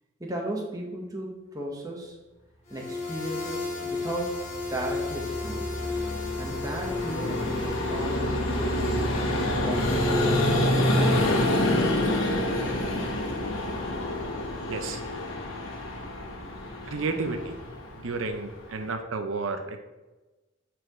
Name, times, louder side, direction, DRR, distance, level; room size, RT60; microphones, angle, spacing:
voice 1, 0.2-2.2 2.7-5.7 6.4-10.2 10.9-11.4 11.7-12.4, right 1 dB, 20° right, -1 dB, 1.2 m, -36 dB
sound 1, 2.7-8.5, left 4 dB, 35° left, 2.0 m, -34 dB
Vehicle, 4.2-18.9, left 1 dB, 80° left, 1.5 m, -27 dB
voice 2, 14.7-15.0 16.9-17.6 18.0-19.8, right 3 dB, 75° right, 6 dB, 0.6 m, -31 dB
10.5 x 4.6 x 3.1 m, 1.1 s
head